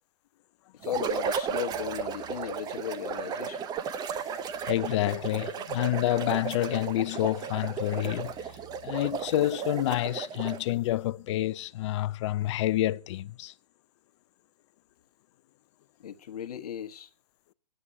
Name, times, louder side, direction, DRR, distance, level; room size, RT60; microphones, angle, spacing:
voice 1, 0.8-3.6 16.0-17.1, left 9 dB, 60° left, 1.3 m, -36 dB
sound 1, 0.8-10.7, right 6 dB, 20° right, 0.8 m, -34 dB
sound 2, 1.7-3.1 3.7-4.8 5.3-12.0 12.4-12.5, right 1 dB, 15° left, 1.1 m, -56 dB
voice 2, 4.6-8.5 8.8-13.5, left 14 dB, 45° left, 0.5 m, -28 dB
11.0 x 7.9 x 7.4 m
hypercardioid pair, 130°, 21 cm